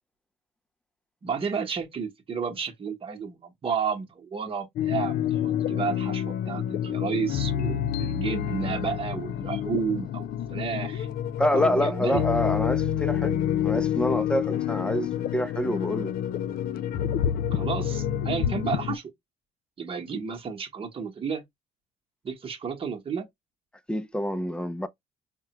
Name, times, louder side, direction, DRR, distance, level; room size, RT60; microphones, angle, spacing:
voice 1, 1.2-11.1 11.5-12.2 17.5-19.1 19.8-21.4 22.2-23.3, right 6 dB, 35° right, 1.0 m, -32 dB
sound 1, 4.8-19.0, left 10 dB, 60° left, 0.5 m, -28 dB
voice 2, 11.4-13.4 13.6-16.1 23.9-24.9, equal, 5° left, 0.4 m, -27 dB
4.7 x 2.2 x 2.9 m
cardioid pair, 110°, 17 cm